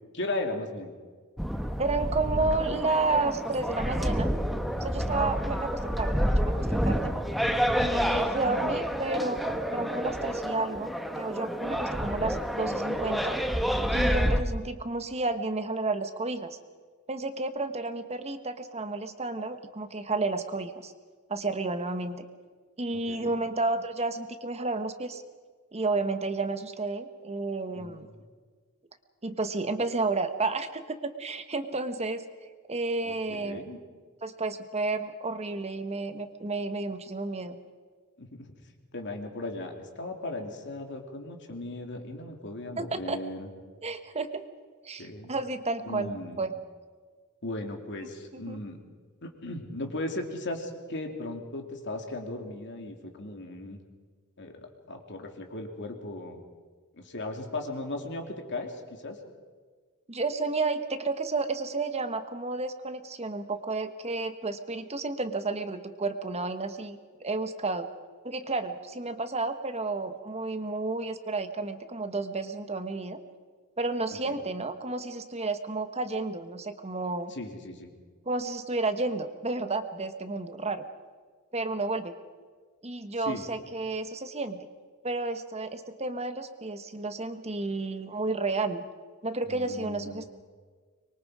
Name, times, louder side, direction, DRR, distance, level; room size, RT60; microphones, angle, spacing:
voice 1, 0.1-0.9 23.1-23.5 27.7-28.2 33.0-33.8 38.2-38.5 38.9-43.5 45.0-45.3 45.8-46.4 47.4-48.8 49.2-53.8 54.4-56.4 57.0-59.2 74.2-74.4 77.3-77.9 83.2-83.4 89.5-90.3, left 2 dB, 55° left, 3 dB, 2.8 m, -37 dB
sound 1, 1.4-14.4, equal, ahead, 1.2 m, -29 dB
voice 2, 1.8-4.3 4.8-7.1 7.8-13.3 13.9-16.6 17.1-20.9 21.3-22.2 22.8-25.2 25.7-28.1 29.2-32.2 32.7-33.6 34.2-37.6 42.8-43.2 43.8-44.4 44.8-46.5 48.0-48.6 60.1-67.9 68.2-73.2 73.8-77.3 78.2-80.9 81.5-82.1 82.8-84.7 85.0-88.8 89.2-90.3, right 3 dB, 30° right, 9 dB, 1.3 m, -31 dB
24.5 x 23.0 x 5.0 m, 1.5 s
head